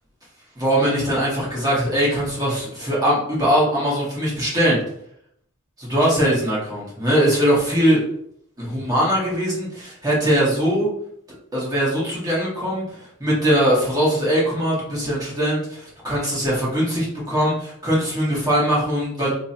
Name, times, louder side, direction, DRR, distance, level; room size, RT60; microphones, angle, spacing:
voice 1, 0.6-4.8 5.8-8.0 8.6-10.9 11.5-19.3, equal, 20° right, -6 dB, 1.3 m, -21 dB
3.3 x 2.2 x 4.2 m, 0.70 s
head